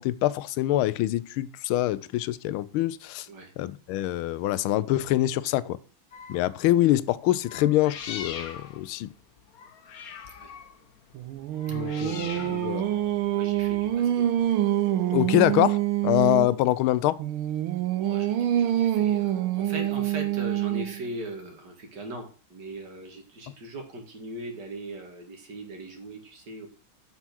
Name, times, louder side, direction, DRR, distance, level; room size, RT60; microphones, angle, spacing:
voice 1, 0.0-3.3 3.6-5.8 6.3-9.1 11.7-12.9 15.1-15.8 16.0-17.2, left 14 dB, 85° left, 1.5 m, -25 dB
sound 1, 6.1-6.7 7.4-14.5, left 7 dB, 55° left, 1.3 m, -43 dB
Singing, 11.1-16.6 17.2-21.1, right 12 dB, 85° right, 1.6 m, -26 dB
voice 2, 13.3-14.2 17.9-26.7, right 1 dB, 55° right, 2.7 m, -40 dB
8.0 x 5.9 x 6.0 m
omnidirectional pair, 2.3 m